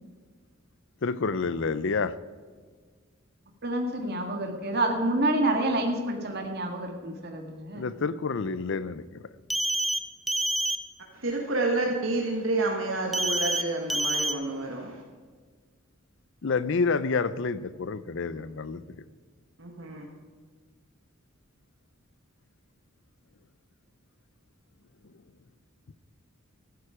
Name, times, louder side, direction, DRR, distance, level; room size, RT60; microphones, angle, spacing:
voice 1, 1.0-2.2 7.7-9.2 16.4-18.8 25.9-26.0, left 4 dB, 60° left, 16 dB, 0.6 m, -28 dB
voice 2, 3.6-7.9, right 1 dB, 50° right, 3 dB, 2.0 m, -28 dB
sound 1, 9.5-10.0 10.3-10.8 13.1-13.6 13.9-14.3, right 1 dB, ahead, 0.6 m, -27 dB
voice 3, 11.1-15.0 19.6-20.0, right 2 dB, 65° right, 0 dB, 1.6 m, -29 dB
14.5 x 11.5 x 5.0 m, 1.5 s
head